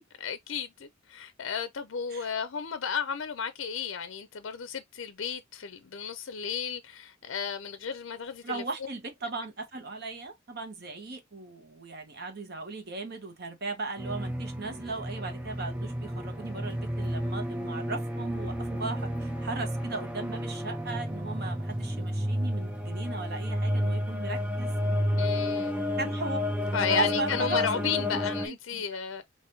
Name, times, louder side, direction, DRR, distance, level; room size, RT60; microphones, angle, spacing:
voice 1, 0.2-8.6 25.2-25.8 26.7-29.2, left 7 dB, 70° left, 0.5 m, -33 dB
voice 2, 8.4-24.7 26.0-26.4 26.9-28.8, right 3 dB, 50° right, 1.0 m, -37 dB
sound 1, 14.0-28.5, left 1 dB, 5° right, 0.6 m, -31 dB
5.2 x 2.6 x 2.7 m
head